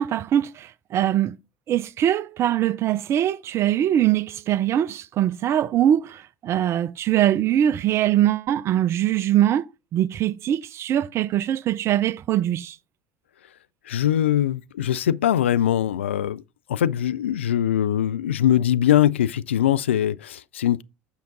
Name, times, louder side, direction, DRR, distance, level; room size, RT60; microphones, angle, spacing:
voice 1, 0.0-1.3 1.7-12.8, right 11 dB, 45° right, 0.5 m, -22 dB
voice 2, 13.9-16.4 16.7-20.8, left 11 dB, 80° left, 0.3 m, -22 dB
8.4 x 5.7 x 3.9 m
figure-of-eight pair, 65°, 6 cm